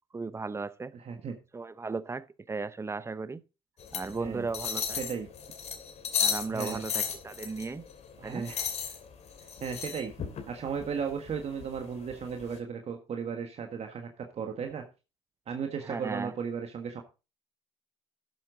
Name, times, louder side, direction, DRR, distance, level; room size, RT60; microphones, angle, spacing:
voice 1, 0.1-0.9 1.5-3.4 3.9-5.0 6.2-7.8 8.2-8.5 15.9-16.3, right 4 dB, 20° right, 0.7 m, -36 dB
voice 2, 0.9-1.4 4.1-4.5 4.9-5.3 6.5-6.8 8.2-8.6 9.6-10.2 10.5-14.8 15.5-17.0, right 6 dB, 50° right, 1.5 m, -35 dB
sound 1, 3.8-12.6, left 7 dB, 55° left, 2.6 m, -36 dB
11.5 x 7.9 x 3.9 m
supercardioid pair, 75°, 14 cm